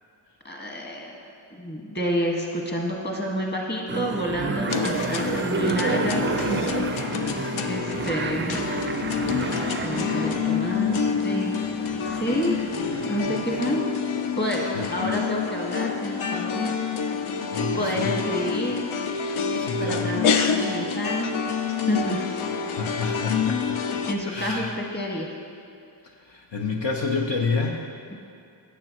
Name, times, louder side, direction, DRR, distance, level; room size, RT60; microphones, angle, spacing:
voice 1, 0.4-1.2 1.6-6.7 7.7-8.7 9.8-11.6 12.1-12.6 12.9-13.8 14.4-16.7 17.8-18.8 19.8-21.4 21.9-22.3 24.1-25.3, equal, 20° left, -1 dB, 1.6 m, -29 dB
sound 1, 3.9-13.8, right 5 dB, 25° right, 0.4 m, -31 dB
sound 2, 4.7-24.1, left 6 dB, 85° left, 0.6 m, -27 dB
voice 2, 14.7-15.1 17.5-18.1 19.6-20.1 22.7-23.8 24.3-24.7 26.3-27.8, left 4 dB, 65° left, 0 dB, 0.9 m, -29 dB
12.0 x 8.0 x 3.0 m, 2.5 s
cardioid pair, 50°, 47 cm